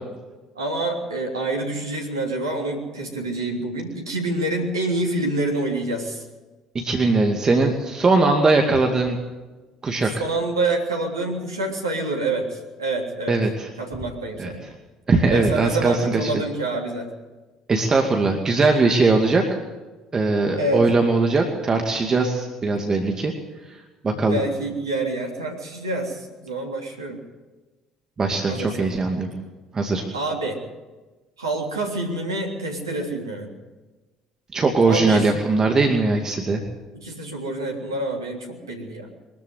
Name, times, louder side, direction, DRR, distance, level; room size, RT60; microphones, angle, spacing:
voice 1, 0.5-6.3 10.0-13.4 13.8-14.6 15.3-17.1 20.6-20.9 24.1-27.2 28.5-28.9 30.1-30.6 31.4-33.5 34.8-35.3 36.9-39.1, right 2 dB, 80° right, 1 dB, 3.3 m, -27 dB
voice 2, 6.7-9.2 9.8-10.2 13.3-13.7 14.4-14.5 15.1-16.3 17.7-19.4 20.1-23.3 23.7-24.4 28.2-29.3 29.7-30.0 34.5-36.6, right 3 dB, 30° right, 3 dB, 2.4 m, -20 dB
23.0 x 14.0 x 8.1 m, 1.2 s
figure-of-eight pair, 55°, 2 cm